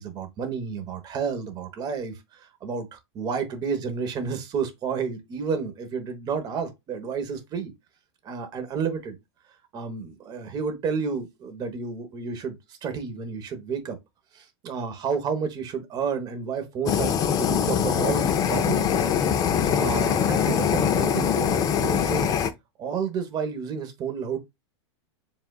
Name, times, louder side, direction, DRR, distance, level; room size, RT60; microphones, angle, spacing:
voice 1, 0.0-7.7 8.2-9.2 9.7-14.0 14.3-18.9 19.7-22.3 22.8-24.4, right 6 dB, 25° right, 1.1 m, -31 dB
Fire, 16.9-22.5, left 8 dB, 25° left, 0.5 m, -23 dB
7.1 x 2.5 x 2.3 m
hypercardioid pair, 135°, 15 cm